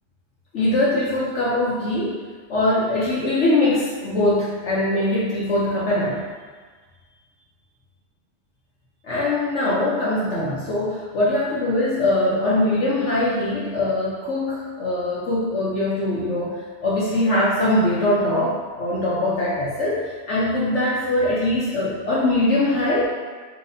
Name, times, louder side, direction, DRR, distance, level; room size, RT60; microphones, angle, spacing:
voice 1, 0.5-2.2 2.5-6.2 9.0-23.0, left 1 dB, 60° left, -7 dB, 0.8 m, -22 dB
5.8 x 2.9 x 2.6 m, 1.5 s
omnidirectional pair, 1.9 m